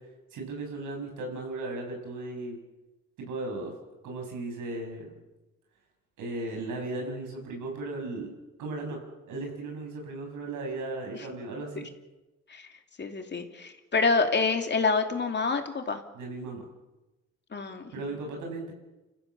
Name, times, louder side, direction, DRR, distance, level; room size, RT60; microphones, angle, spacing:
voice 1, 0.3-2.6 3.2-3.8 4.0-5.1 6.2-8.3 8.6-9.0 9.3-11.9 16.1-16.7 17.9-18.7, right 2 dB, 85° right, 2 dB, 7.2 m, -36 dB
voice 2, 13.0-16.0 17.5-18.1, left 4 dB, 35° left, 5 dB, 2.8 m, -27 dB
29.0 x 15.0 x 7.3 m, 1.1 s
cardioid pair, 90°, 30 cm